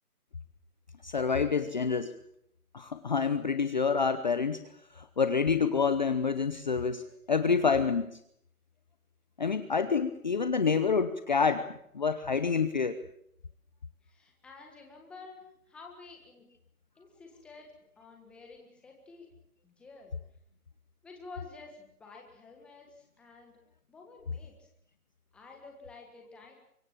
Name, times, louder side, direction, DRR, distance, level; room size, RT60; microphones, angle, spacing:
voice 1, 1.0-2.1 2.7-4.6 4.9-8.2 9.4-11.7 11.9-13.0, left 5 dB, 30° left, 10 dB, 0.9 m, -27 dB
voice 2, 14.0-16.5 17.0-19.3 19.6-20.1 21.0-23.6 23.9-24.7 25.3-26.6, left 4 dB, ahead, 1 dB, 1.5 m, -51 dB
25.0 x 22.5 x 7.5 m, 0.73 s
hypercardioid pair, 165°, 45 cm